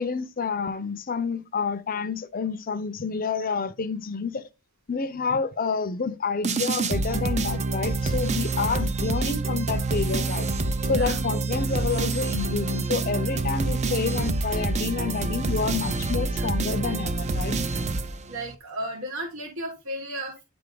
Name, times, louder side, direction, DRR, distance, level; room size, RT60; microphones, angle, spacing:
voice 1, 0.0-4.4 4.9-10.5 10.9-17.6, left 5 dB, 40° left, 0.6 m, -29 dB
sound 1, 6.4-18.6, right 3 dB, 30° right, 0.6 m, -27 dB
voice 2, 10.8-11.2 16.4-16.5 18.3-20.4, right 1 dB, 70° right, 1.4 m, -34 dB
9.7 x 3.4 x 3.8 m
head